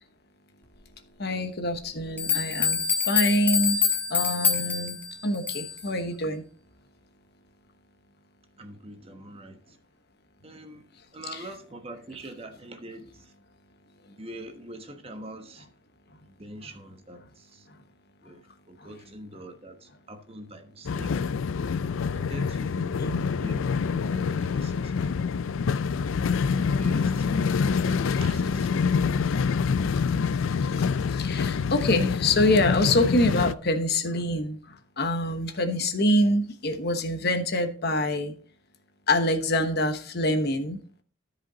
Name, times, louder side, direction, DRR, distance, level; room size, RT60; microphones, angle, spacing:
voice 1, 1.2-2.8 3.1-3.8 4.1-6.4 11.3-11.5 18.8-18.9 23.0-23.3 28.0-28.2 29.9-30.0 30.6-38.3 39.1-40.8, left 1 dB, 55° left, 1.1 m, -26 dB
sound 1, 1.7-1.8 2.2-5.9, left 7 dB, 10° left, 1.5 m, -26 dB
voice 2, 8.6-9.8 10.4-10.9 11.1-13.3 14.2-15.7 16.3-17.7 18.2-21.2 22.1-23.0 23.4-25.4 26.8-27.6 27.9-29.1, right 1 dB, 30° right, 1.2 m, -44 dB
sound 2, 20.9-33.5, left 5 dB, 75° left, 0.4 m, -26 dB
13.0 x 5.1 x 3.9 m
head